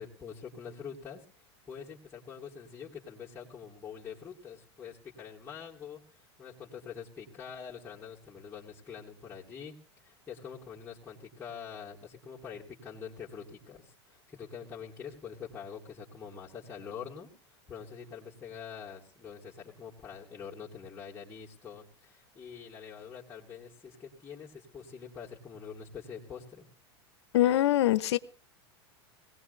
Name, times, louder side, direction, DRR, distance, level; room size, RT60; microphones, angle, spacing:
voice 1, 0.0-9.7 10.0-26.7, left 7 dB, 15° left, -8 dB, 2.6 m, -45 dB
voice 2, 27.3-28.2, left 13 dB, 85° left, 17 dB, 0.8 m, -23 dB
21.5 x 18.0 x 2.7 m, 0.37 s
supercardioid pair, 125°, 14 cm